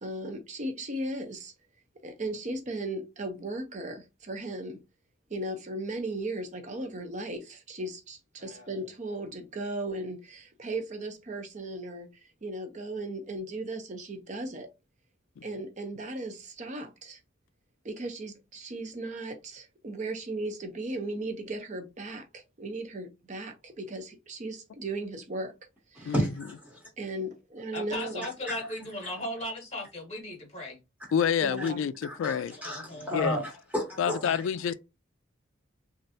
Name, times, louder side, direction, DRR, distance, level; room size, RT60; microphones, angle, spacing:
voice 1, 0.0-1.5 2.0-4.8 5.3-12.1 12.4-14.7 15.4-17.2 17.8-25.5 25.9-26.1 27.0-28.3 31.4-31.8, right 2 dB, 40° right, 0.6 m, -36 dB
voice 2, 8.4-8.7 27.7-30.8 32.6-33.2, left 1 dB, 35° left, 1.0 m, -37 dB
voice 3, 26.0-26.8 28.5-28.6 31.6-31.7 32.0-34.4, equal, 10° right, 0.8 m, -33 dB
voice 4, 31.1-32.6 33.1-33.4 34.0-34.7, left 7 dB, 80° left, 0.3 m, -28 dB
3.2 x 2.5 x 2.7 m
head